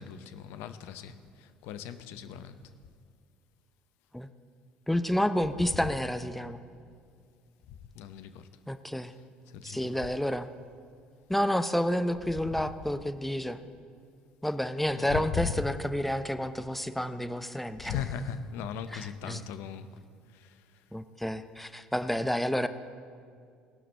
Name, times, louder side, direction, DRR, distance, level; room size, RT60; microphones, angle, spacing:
voice 1, 0.0-2.6 7.7-8.5 9.5-9.9 14.9-15.6 17.8-19.9 20.3-20.6, left 8 dB, 65° left, 11 dB, 0.6 m, -38 dB
voice 2, 4.9-6.6 8.7-9.1 9.6-10.5 11.3-13.6 14.4-18.0 18.9-19.4 20.9-22.7, equal, 5° left, 10 dB, 0.6 m, -30 dB
17.0 x 5.9 x 6.4 m, 2.2 s
hypercardioid pair, 60°, 4 cm